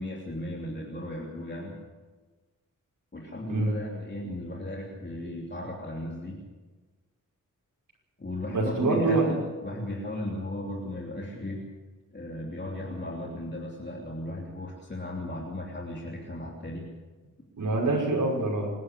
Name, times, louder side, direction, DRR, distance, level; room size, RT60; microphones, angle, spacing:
voice 1, 0.0-1.8 3.1-6.5 8.2-11.7 12.1-16.9, left 1 dB, 35° left, -2 dB, 3.1 m, -36 dB
voice 2, 8.5-9.3 17.6-18.7, right 2 dB, 75° right, -3 dB, 5.8 m, -25 dB
26.0 x 11.5 x 8.5 m, 1.3 s
wide cardioid pair, 85°, 32 cm